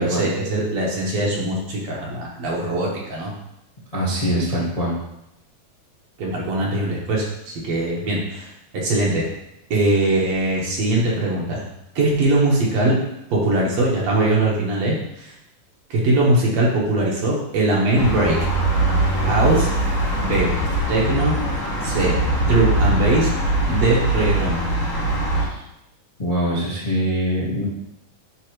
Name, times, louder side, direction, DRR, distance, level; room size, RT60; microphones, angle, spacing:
voice 1, 0.0-3.3 6.2-9.2 9.7-11.7 12.0-13.0 13.3-15.3 15.9-18.4 19.2-19.7 20.2-20.5 20.9-21.4 21.8-22.2 22.4-23.3 23.7-24.6, right 2 dB, 60° right, -4 dB, 2.4 m, -21 dB
voice 2, 3.9-4.9 25.4-25.6 26.2-27.7, equal, 20° left, -6 dB, 0.9 m, -23 dB
sound 1, 18.0-25.5, right 1 dB, 60° left, 3.0 m, -21 dB
9.5 x 4.7 x 3.1 m, 0.84 s
omnidirectional pair, 3.6 m